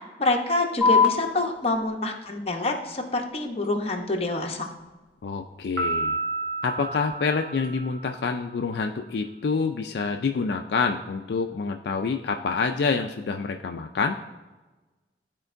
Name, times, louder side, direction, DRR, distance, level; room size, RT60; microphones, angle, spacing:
voice 1, 0.2-4.7, left 2 dB, 35° left, 2 dB, 0.8 m, -26 dB
sound 1, 0.8-7.8, left 5 dB, 5° right, 0.9 m, -30 dB
voice 2, 5.2-6.2 6.6-14.2, left 4 dB, 65° left, 5 dB, 0.3 m, -27 dB
Piano, 5.8-8.3, right 3 dB, 90° right, 1.3 m, -31 dB
12.0 x 4.5 x 2.6 m, 1.2 s
head